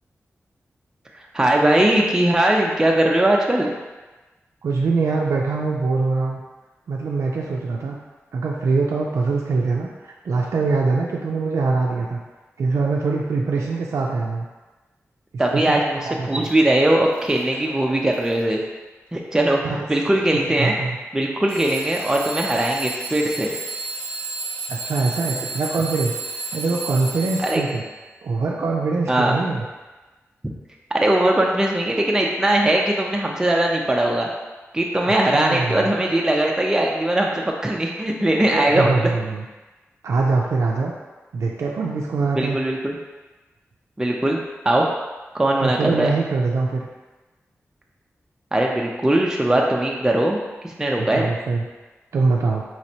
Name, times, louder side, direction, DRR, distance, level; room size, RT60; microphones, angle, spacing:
voice 1, 1.3-3.7 15.4-18.6 19.1-20.7 21.1-23.5 27.4-27.6 29.1-29.3 30.9-34.3 34.7-39.1 42.3-43.0 44.0-44.4 44.7-44.9 45.3-46.1 48.5-50.4 50.6-51.3, right 1 dB, 15° right, -1 dB, 0.4 m, -20 dB
voice 2, 4.6-6.4 6.9-8.0 8.3-12.2 12.6-14.4 15.5-16.5 19.6-19.9 20.5-21.0 24.7-27.8 28.2-29.6 35.0-35.9 38.4-39.4 40.0-40.9 41.3-42.6 45.6-46.9 51.0-51.6 52.1-52.6, right 4 dB, 85° right, -2 dB, 0.4 m, -23 dB
Alarm / Clock, 16.4-16.6 17.1-17.6 18.1-18.5 19.4-19.5 21.5-27.9, right 3 dB, 35° left, 1.1 m, -32 dB
4.3 x 3.0 x 2.8 m, 1.2 s
wide cardioid pair, 75°, 5 cm